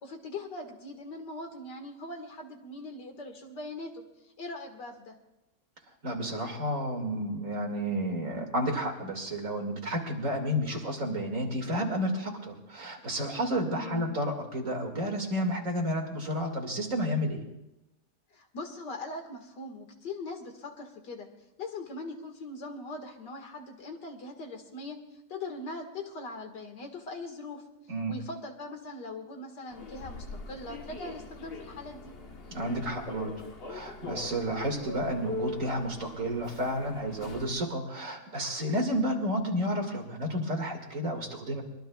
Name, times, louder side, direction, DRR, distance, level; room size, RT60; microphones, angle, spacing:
voice 1, 0.0-4.0 4.4-5.1 13.8-14.0 18.3-21.3 21.6-25.0 25.3-27.6 28.1-32.2, left 2 dB, 90° left, 3 dB, 2.5 m, -41 dB
voice 2, 6.0-17.4 27.9-28.2 32.5-33.3 33.7-41.6, equal, 50° right, 1 dB, 2.6 m, -31 dB
Human voice / Subway metro underground, 29.7-37.6, left 3 dB, 40° left, 1.1 m, -42 dB
23.5 x 22.0 x 2.3 m, 0.95 s
omnidirectional pair, 1.8 m